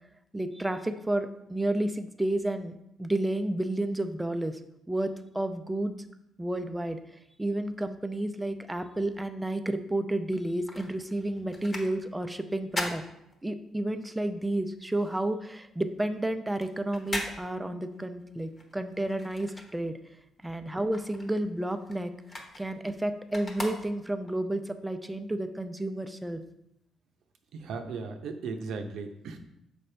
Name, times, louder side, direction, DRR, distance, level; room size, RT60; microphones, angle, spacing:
voice 1, 0.3-2.7 3.0-4.6 4.9-5.9 6.4-7.0 7.4-13.0 13.4-20.0 20.4-22.1 22.6-26.4, right 1 dB, 10° right, 8 dB, 0.5 m, -31 dB
sound 1, 10.2-13.9 14.3-20.3 20.6-24.4 24.9-25.0, left 1 dB, 30° left, 1.2 m, -40 dB
voice 2, 27.5-29.4, right 4 dB, 80° right, 6 dB, 0.7 m, -36 dB
6.5 x 5.1 x 3.3 m, 0.81 s
cardioid pair, 90°, 0 cm